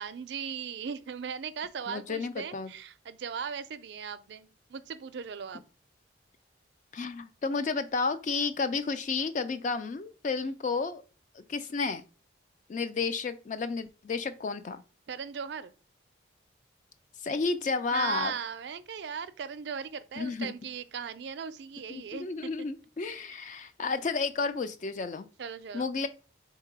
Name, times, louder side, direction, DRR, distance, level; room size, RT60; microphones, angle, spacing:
voice 1, 0.0-5.6 15.1-15.7 17.9-22.3 25.4-25.9, right 6 dB, 65° right, 0.4 m, -38 dB
voice 2, 1.9-2.7 6.9-11.0 11.3-12.0 12.7-14.8 17.2-18.3 20.2-20.5 21.9-25.3 25.7-26.1, left 4 dB, 40° left, 0.3 m, -32 dB
3.8 x 2.8 x 4.6 m
head